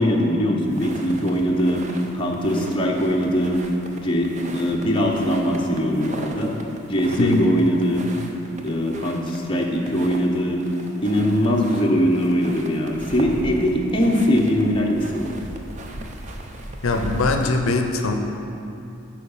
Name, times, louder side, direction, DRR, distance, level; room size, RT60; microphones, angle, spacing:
voice 1, 0.0-1.8 2.1-3.6 3.9-6.5 6.9-8.1 8.6-10.6 11.0-15.3, equal, 25° left, -1 dB, 0.7 m, -21 dB
sound 1, 0.6-17.5, right 1 dB, 35° right, 0.5 m, -38 dB
voice 2, 16.8-18.1, left 3 dB, 75° left, 4 dB, 0.5 m, -21 dB
8.2 x 4.9 x 5.5 m, 2.8 s
head